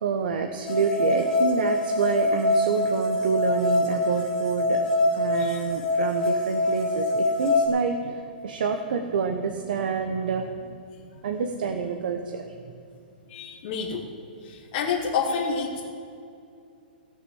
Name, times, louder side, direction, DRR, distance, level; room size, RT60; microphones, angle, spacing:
voice 1, 0.0-10.8 11.2-12.7, right 6 dB, 60° right, 5 dB, 0.9 m, -28 dB
sound 1, 0.6-7.7, left 2 dB, 10° left, 1.6 m, -24 dB
voice 2, 13.3-14.0 14.4-15.8, left 5 dB, 30° left, -4 dB, 1.4 m, -28 dB
17.0 x 6.0 x 7.1 m, 2.5 s
hypercardioid pair, 170°, 6 cm